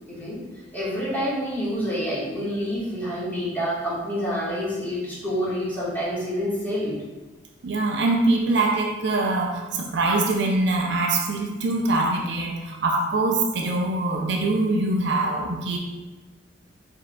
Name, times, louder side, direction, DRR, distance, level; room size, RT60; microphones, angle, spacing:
voice 1, 0.1-0.4 0.7-6.9, equal, 10° left, -10 dB, 1.5 m, -27 dB
voice 2, 7.6-15.8, right 2 dB, 65° right, 1 dB, 0.5 m, -23 dB
4.8 x 3.6 x 2.2 m, 1.2 s
head